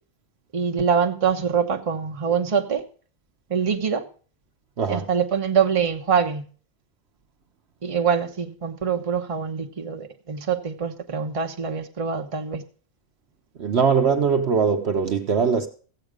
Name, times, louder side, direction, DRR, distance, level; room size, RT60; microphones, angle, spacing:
voice 1, 0.5-2.8 3.5-4.0 4.9-6.5 7.8-12.6, right 6 dB, 30° right, 0.9 m, -24 dB
voice 2, 4.8-5.1 13.6-15.7, right 6 dB, 55° right, 1.0 m, -21 dB
14.5 x 8.0 x 4.9 m
omnidirectional pair, 1.4 m